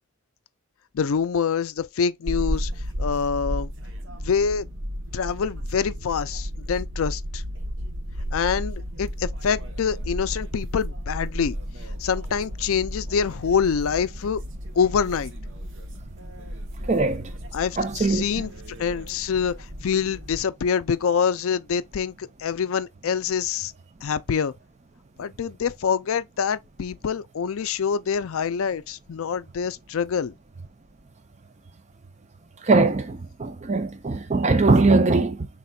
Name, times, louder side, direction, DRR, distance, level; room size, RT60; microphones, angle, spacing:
voice 1, 0.9-2.7 3.0-3.7 4.1-4.7 5.1-7.4 8.3-11.6 12.0-14.4 14.8-15.3 17.5-18.5 18.8-19.5 19.8-23.7 24.0-24.5 25.2-30.3, left 6 dB, 70° left, 0.4 m, -25 dB
sound 1, 2.3-20.4, equal, 55° right, 0.9 m, -33 dB
voice 2, 16.8-17.3 17.8-18.2 32.6-35.5, right 3 dB, 30° right, 0.5 m, -21 dB
5.7 x 3.6 x 2.3 m
head